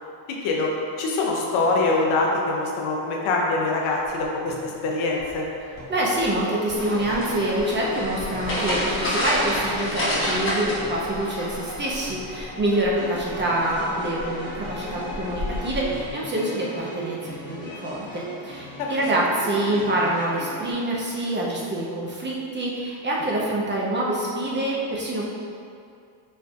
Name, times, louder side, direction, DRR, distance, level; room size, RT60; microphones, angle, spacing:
voice 1, 1.0-5.4 18.8-18.9, left 3 dB, 85° left, -1 dB, 0.7 m, -24 dB
sound 1, 3.8-20.7, left 1 dB, 60° left, 1.0 m, -39 dB
voice 2, 5.9-25.3, right 1 dB, 25° right, -4 dB, 0.4 m, -26 dB
sound 2, 6.7-16.1, equal, 25° left, 0.9 m, -30 dB
4.3 x 2.5 x 2.3 m, 2.4 s
cardioid pair, 105°, 47 cm